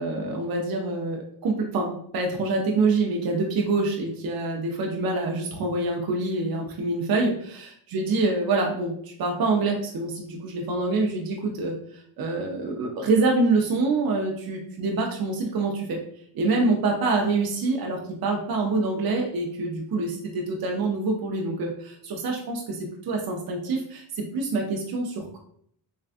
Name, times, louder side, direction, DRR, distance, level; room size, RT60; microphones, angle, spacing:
voice 1, 0.0-16.0 16.3-25.4, right 3 dB, 50° right, 0 dB, 0.6 m, -26 dB
3.4 x 2.3 x 2.5 m, 0.66 s
cardioid pair, 75°, 46 cm